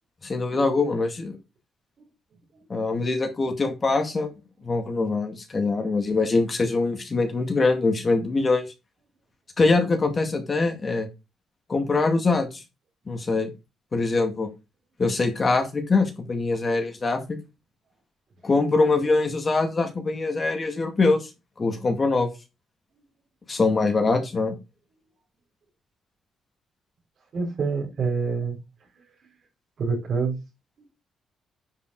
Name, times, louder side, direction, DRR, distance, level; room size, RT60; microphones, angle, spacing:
voice 1, 0.2-1.4 2.7-4.3 4.6-8.6 9.6-11.1 11.7-12.6 13.1-13.5 13.9-14.5 15.0-17.2 18.4-21.3 21.6-22.3 23.5-24.6, left 3 dB, 25° left, 2.1 m, -23 dB
voice 2, 27.3-28.6 29.8-30.3, right 5 dB, 45° right, 4.7 m, -26 dB
10.5 x 5.8 x 3.9 m
cardioid pair, 150°, 0 cm